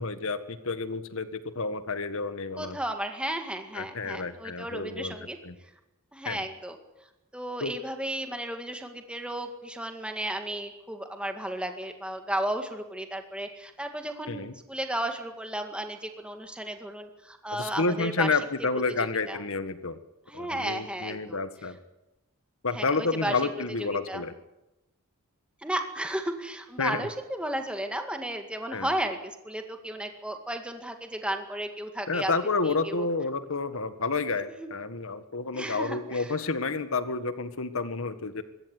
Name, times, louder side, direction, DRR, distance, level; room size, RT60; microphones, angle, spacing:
voice 1, 0.0-2.8 3.7-5.1 5.4-5.5 6.2-6.4 7.6-7.7 14.3-14.5 17.6-20.0 20.3-21.8 22.6-24.3 26.8-27.1 28.7-28.9 32.1-38.4, left 3 dB, 65° left, 10 dB, 1.7 m, -30 dB
voice 2, 2.6-5.7 6.1-6.8 7.3-18.4 19.0-19.4 20.3-21.4 22.7-23.4 24.1-24.2 25.6-32.3 32.6-33.1 34.5-34.7 35.5-36.4, right 1 dB, 5° right, 5 dB, 2.0 m, -34 dB
24.5 x 14.0 x 9.7 m, 0.95 s
head